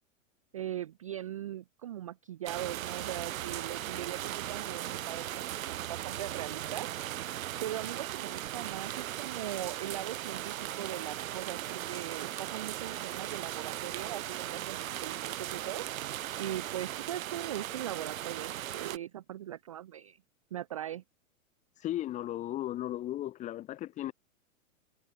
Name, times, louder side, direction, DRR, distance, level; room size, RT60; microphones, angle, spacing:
voice 1, 0.5-6.9 7.6-15.8 16.4-20.2 20.5-21.0, right 12 dB, 25° right, 0.3 m, -40 dB
sound 1, 2.5-19.0, right 13 dB, 75° right, 1.2 m, -38 dB
voice 2, 21.8-24.1, left 13 dB, 15° left, 1.3 m, -35 dB
supercardioid pair, 160°, 41 cm